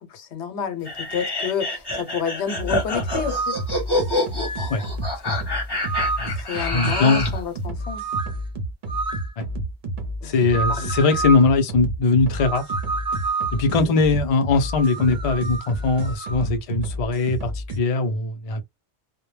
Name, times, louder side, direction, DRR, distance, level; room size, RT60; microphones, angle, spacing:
voice 1, 0.0-3.6 6.4-8.0 10.2-10.3 10.7-10.9 13.8-14.0, left 7 dB, 70° left, 1.0 m, -30 dB
sound 1, 0.8-7.4, left 2 dB, 25° left, 0.8 m, -27 dB
sound 2, 2.6-17.8, right 1 dB, 50° right, 0.7 m, -30 dB
sound 3, 3.1-3.7 4.4-4.9 5.8-6.4 6.8-7.3 7.8-8.4 8.9-9.3 10.5-11.5 12.4-13.7 14.6-16.5, right 4 dB, 5° right, 0.5 m, -30 dB
voice 2, 6.2-7.3 9.4-9.5 10.2-12.6 13.5-18.6, left 3 dB, 50° left, 0.4 m, -21 dB
2.1 x 2.1 x 3.1 m
omnidirectional pair, 1.2 m